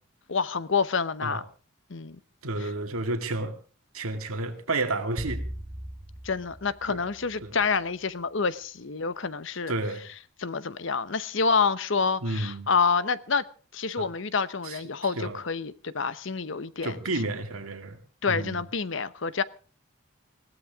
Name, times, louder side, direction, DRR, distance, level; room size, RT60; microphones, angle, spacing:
voice 1, 0.3-1.4 1.9-2.2 6.2-9.7 10.4-13.4 13.7-17.0 18.2-19.4, left 5 dB, 60° left, 0.8 m, -27 dB
voice 2, 2.4-3.5 3.9-5.4 6.9-7.0 7.4-7.6 9.7-10.1 12.2-12.7 14.0-14.1 14.6-15.3 16.8-18.0 18.3-18.6, right 2 dB, 85° right, 2.2 m, -31 dB
sound 1, 5.2-7.7, equal, 30° right, 2.8 m, -39 dB
20.5 x 16.5 x 3.6 m
head